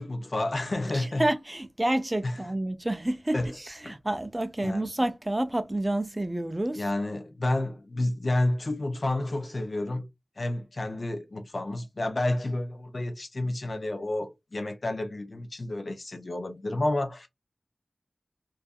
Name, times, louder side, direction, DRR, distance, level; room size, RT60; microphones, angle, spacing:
voice 1, 0.0-1.2 2.2-2.3 3.3-3.5 3.8-4.0 4.6-4.9 6.7-10.1 10.4-17.3, left 2 dB, 50° left, 0.4 m, -30 dB
voice 2, 0.9-6.8, right 1 dB, 20° right, 0.3 m, -29 dB
2.6 x 2.3 x 2.2 m
wide cardioid pair, 80°, 0 cm